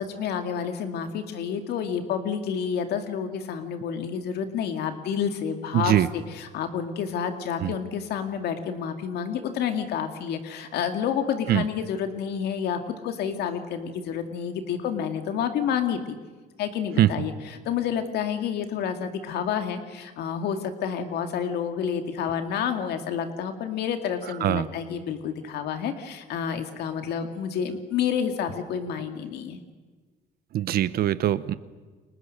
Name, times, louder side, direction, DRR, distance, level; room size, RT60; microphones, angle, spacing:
voice 1, 0.0-16.2 16.6-29.6, left 7 dB, 75° left, 7 dB, 2.3 m, -29 dB
voice 2, 5.7-6.1 7.6-7.7 11.5-11.6 17.0-17.1 24.4-24.7 30.5-31.5, right 12 dB, 65° right, 15 dB, 1.0 m, -22 dB
29.5 x 23.5 x 6.6 m, 1.4 s
cardioid pair, 110°, 17 cm